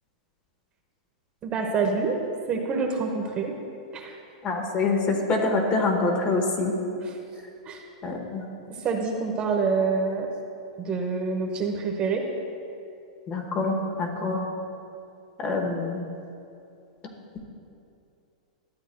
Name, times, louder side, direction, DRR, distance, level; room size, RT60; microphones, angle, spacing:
voice 1, 1.4-2.2 2.5-3.5 3.9-4.1 7.0-7.1 7.7-7.8 8.8-10.3 10.8-12.2, right 4 dB, 30° right, 2 dB, 0.9 m, -26 dB
voice 2, 4.4-6.7 8.0-8.4 13.3-14.4 15.4-16.0, left 3 dB, 30° left, 2 dB, 1.2 m, -25 dB
12.5 x 7.9 x 2.2 m, 2.6 s
hypercardioid pair, 130°, 4 cm